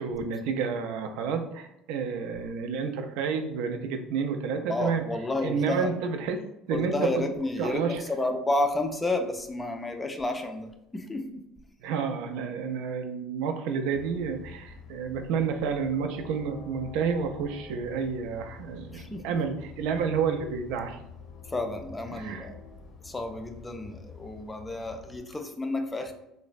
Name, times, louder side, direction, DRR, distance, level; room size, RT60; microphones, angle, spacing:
voice 1, 0.0-5.0 5.4-7.3 7.6-8.0 11.8-21.0 22.1-22.5, right 6 dB, 80° right, 6 dB, 0.3 m, -30 dB
voice 2, 4.7-5.9 6.7-11.4 18.9-19.2 21.5-22.6 23.0-26.1, left 2 dB, 15° left, 6 dB, 0.4 m, -31 dB
Train, 13.9-25.2, left 4 dB, 55° left, 0.6 m, -47 dB
3.1 x 2.1 x 2.4 m, 0.87 s
supercardioid pair, 100°, 0 cm